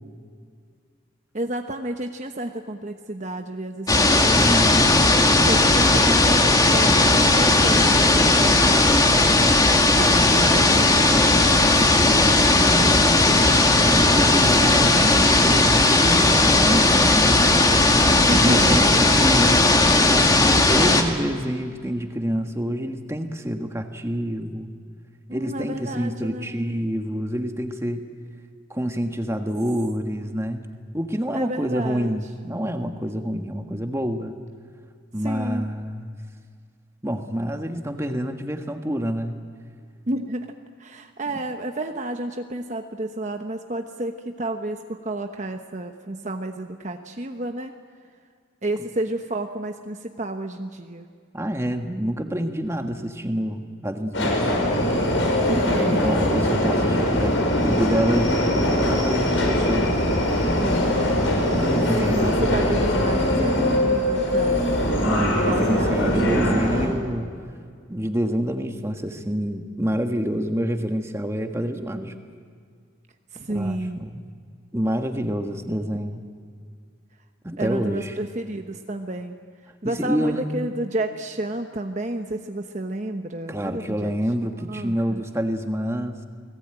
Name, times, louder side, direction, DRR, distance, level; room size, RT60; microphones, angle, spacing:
voice 1, 1.3-4.4 5.5-9.5 9.9-13.5 14.2-15.6 18.3-18.9 20.4-20.8 25.3-26.5 31.3-32.1 35.2-35.7 40.1-40.5 40.8-47.7 48.6-51.1 55.5-56.1 60.1-61.1 62.0-64.8 65.3-66.6 73.3-74.0 77.6-79.4 79.8-84.1 84.5-85.2, right 1 dB, 40° right, 5 dB, 1.1 m, -31 dB
sound 1, 3.9-21.0, left 2 dB, 20° left, 2.0 m, -17 dB
voice 2, 4.3-5.1 13.9-17.6 18.4-19.6 20.1-24.7 25.3-28.1 28.7-30.7 30.9-34.4 35.1-36.1 37.0-39.3 51.3-54.5 55.9-60.0 61.5-62.3 65.0-67.3 67.9-72.1 73.5-74.2 74.7-76.2 77.4-78.1 79.8-80.6 83.5-86.2, equal, 15° right, 5 dB, 1.6 m, -27 dB
Subway metro underground, 54.1-66.9, left 1 dB, 75° left, 6.0 m, -22 dB
29.0 x 19.5 x 9.1 m, 2.1 s
head